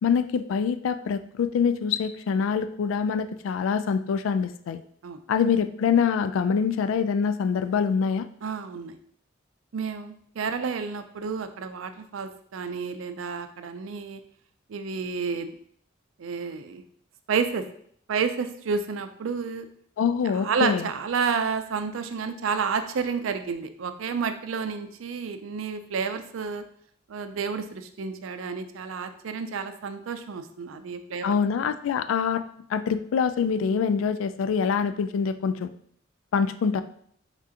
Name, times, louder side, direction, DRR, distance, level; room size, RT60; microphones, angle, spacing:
voice 1, 0.0-4.8 5.3-8.3 20.0-20.8 31.2-32.4 32.7-35.7 36.3-36.8, left 6 dB, 85° left, 12 dB, 0.3 m, -25 dB
voice 2, 8.4-9.0 9.7-14.2 14.7-15.5 16.2-16.8 17.3-17.6 18.1-19.7 20.3-26.6 27.1-31.3, right 5 dB, 90° right, 9 dB, 0.4 m, -30 dB
4.9 x 3.5 x 2.8 m, 0.64 s
head